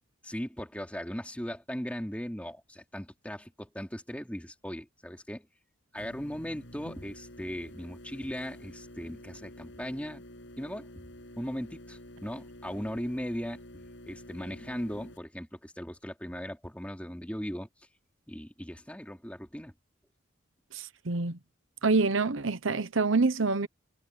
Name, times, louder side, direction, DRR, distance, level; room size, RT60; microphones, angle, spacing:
voice 1, 0.2-5.5 5.9-10.2 10.6-10.9 11.4-13.6 14.1-17.7 18.3-19.7, equal, 5° left, 3.1 m, -38 dB
sound 1, 6.0-15.2, left 1 dB, 65° left, 7.6 m, -49 dB
voice 2, 20.7-21.4 21.8-23.7, right 3 dB, 75° right, 1.0 m, -26 dB
head